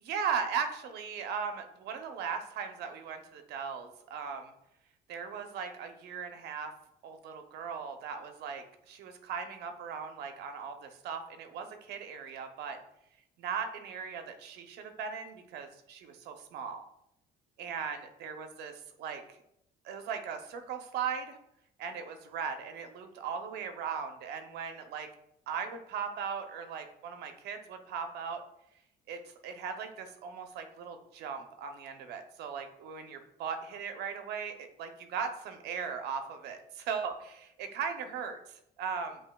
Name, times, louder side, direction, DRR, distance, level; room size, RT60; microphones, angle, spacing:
voice 1, 0.1-4.5 5.1-6.7 7.0-12.8 13.4-16.8 17.6-19.2 19.8-21.4 21.8-25.1 25.5-28.4 29.1-39.2, right 6 dB, 75° right, 7 dB, 0.7 m, -38 dB
7.8 x 2.9 x 2.2 m, 0.77 s
cardioid pair, 110°, 17 cm